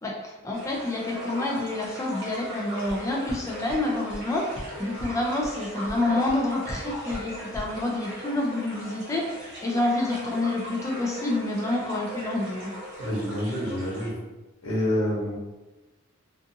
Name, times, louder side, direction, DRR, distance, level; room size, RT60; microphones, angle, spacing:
voice 1, 0.0-4.4 4.8-12.7, left 2 dB, 15° left, -1 dB, 0.4 m, -28 dB
sound 1, 0.5-14.1, right 1 dB, 55° right, 1.0 m, -38 dB
sound 2, 2.9-3.0 3.3-3.4 3.7-3.8 4.1-4.2 4.5-4.6 5.0-5.1 5.4-5.5 5.9-6.0 6.3-6.4 6.7-6.8 7.1-7.2 7.5-7.6, right 1 dB, 35° right, 0.6 m, -37 dB
voice 2, 13.0-14.1 14.6-15.3, equal, 90° left, -5 dB, 1.0 m, -27 dB
2.5 x 2.4 x 2.6 m, 1.1 s
head